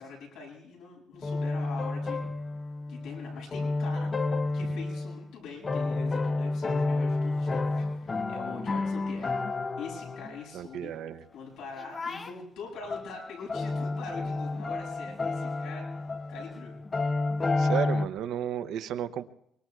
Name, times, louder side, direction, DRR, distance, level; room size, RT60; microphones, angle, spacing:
voice 1, 0.0-2.2 2.9-4.1 4.5-9.3 9.8-10.9 11.3-16.0 16.3-16.7, left 4 dB, 85° left, -1 dB, 7.1 m, -43 dB
sound 1, 1.2-5.2 5.6-10.5 11.8-12.4 12.9-18.1, left 3 dB, 20° left, 0.5 m, -30 dB
voice 2, 10.5-11.2 17.6-19.3, right 10 dB, 65° right, 11 dB, 0.7 m, -33 dB
24.5 x 23.5 x 2.3 m, 0.76 s
cardioid pair, 175°, 0 cm